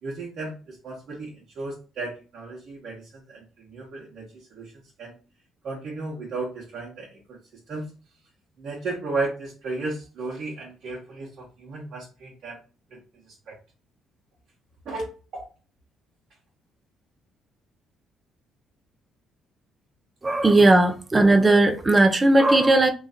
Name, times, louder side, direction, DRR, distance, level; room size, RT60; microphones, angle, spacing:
voice 1, 0.0-5.2 5.6-7.4 7.7-7.9 8.6-12.6 12.9-13.6 14.8-15.5, right 3 dB, 65° right, 1.2 m, -34 dB
voice 2, 20.2-22.9, right 2 dB, 25° right, 0.7 m, -17 dB
3.0 x 2.5 x 4.1 m
supercardioid pair, 75°, 0 cm